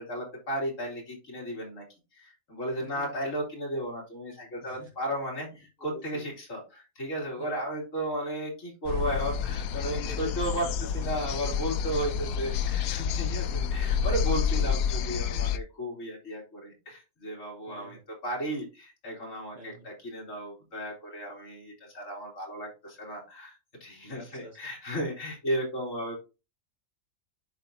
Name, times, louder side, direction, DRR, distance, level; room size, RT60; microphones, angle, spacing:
voice 1, 0.0-1.8 2.1-10.7 10.9-26.2, right 1 dB, 60° left, -1 dB, 3.1 m, -34 dB
voice 2, 2.8-3.1 4.6-4.9 5.9-6.3 7.4-7.6 9.8-10.9 12.0-12.1 14.4-14.8 17.6-18.0 19.5-19.9 24.1-24.6, left 2 dB, 60° right, 0 dB, 2.6 m, -47 dB
sound 1, 8.9-15.6, left 7 dB, 80° left, 1.0 m, -29 dB
11.0 x 4.0 x 2.7 m, 0.29 s
omnidirectional pair, 1.5 m